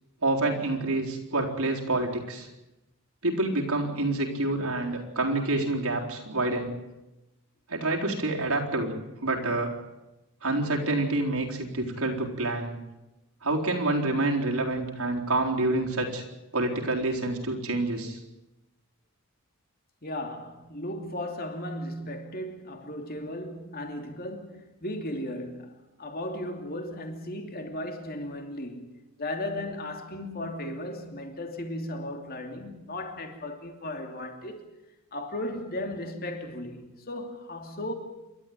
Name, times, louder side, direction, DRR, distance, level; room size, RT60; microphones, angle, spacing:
voice 1, 0.2-2.5 3.2-6.8 7.7-8.9 9.2-9.7 10.4-12.8 13.4-16.2 16.5-18.2, right 2 dB, 80° right, 4.0 m, -27 dB
voice 2, 20.0-34.6 35.1-37.9, left 1 dB, 45° left, 2.9 m, -36 dB
28.0 x 12.5 x 9.3 m
head